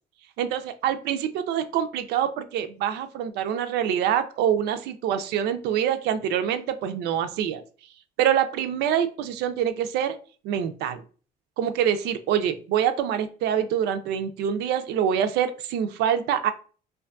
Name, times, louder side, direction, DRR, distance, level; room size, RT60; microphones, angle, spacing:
voice 1, 0.4-7.6 8.2-10.2 10.4-11.0 11.6-16.5, right 9 dB, 80° right, 10 dB, 0.4 m, -25 dB
2.5 x 2.3 x 2.4 m, 0.39 s
cardioid pair, 110°, 17 cm